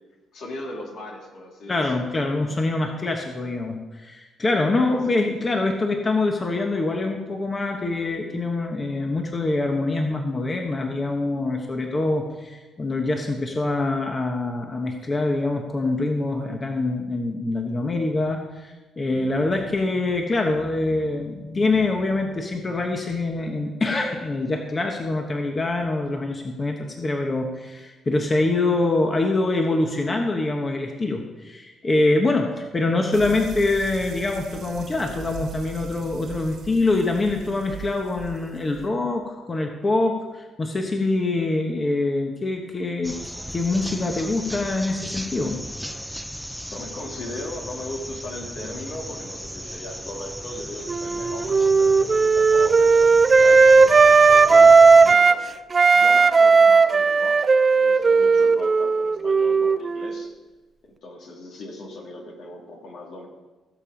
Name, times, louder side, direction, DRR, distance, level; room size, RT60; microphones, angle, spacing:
voice 1, 0.3-2.6 4.7-5.2 46.7-55.4 55.9-57.5 57.7-60.3 60.8-63.3, left 1 dB, 70° left, 0 dB, 2.8 m, -38 dB
voice 2, 1.7-43.2 43.5-45.6, left 2 dB, 30° left, 2 dB, 1.2 m, -24 dB
sound 1, 33.1-38.9, right 7 dB, 70° right, 1.6 m, -39 dB
sound 2, 43.0-55.1, equal, ahead, 0.7 m, -36 dB
Wind instrument woodwind instrument, 50.9-55.4 55.7-60.2, right 4 dB, 35° right, 0.5 m, -15 dB
16.0 x 7.0 x 5.1 m, 1.2 s
cardioid pair, 90°, 0 cm